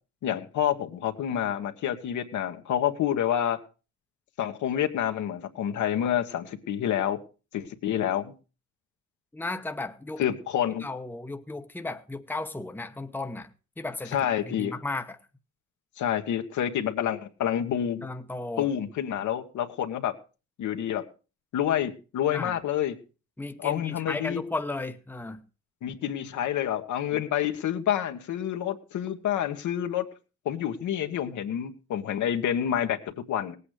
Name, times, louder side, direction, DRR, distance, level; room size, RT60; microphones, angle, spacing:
voice 1, 0.2-3.6 4.4-7.2 7.5-8.3 10.2-10.9 14.1-14.7 16.0-18.1 18.6-20.2 20.6-21.0 21.5-23.0 23.6-24.4 25.8-30.1 30.4-33.6, left 10 dB, 75° left, 1.4 m, -28 dB
voice 2, 9.3-10.2 10.8-13.5 13.8-14.2 14.5-15.2 18.0-18.7 22.3-22.6 23.4-25.4 27.1-27.2, left 2 dB, 5° left, 0.9 m, -35 dB
18.0 x 8.5 x 4.9 m
cardioid pair, 90°, 30 cm